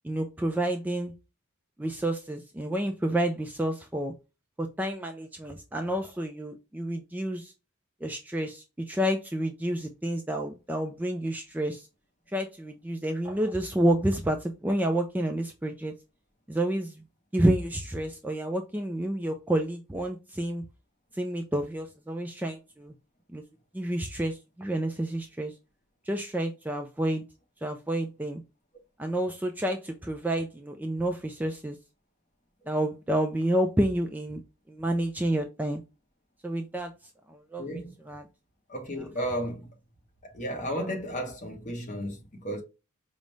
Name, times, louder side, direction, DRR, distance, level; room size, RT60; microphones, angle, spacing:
voice 1, 0.0-1.1 1.8-4.1 4.6-7.5 8.0-11.9 12.3-15.9 16.5-17.0 17.3-20.6 21.1-22.9 23.3-23.4 23.7-25.5 26.1-27.2 27.6-28.4 29.0-31.8 32.7-34.4 34.7-35.8 36.4-36.9 37.3-37.8 38.1-38.2, right 1 dB, 10° right, 0.3 m, -29 dB
voice 2, 37.6-37.9 38.7-39.7 40.2-42.6, equal, 35° left, 1.0 m, -33 dB
5.0 x 2.1 x 3.1 m
head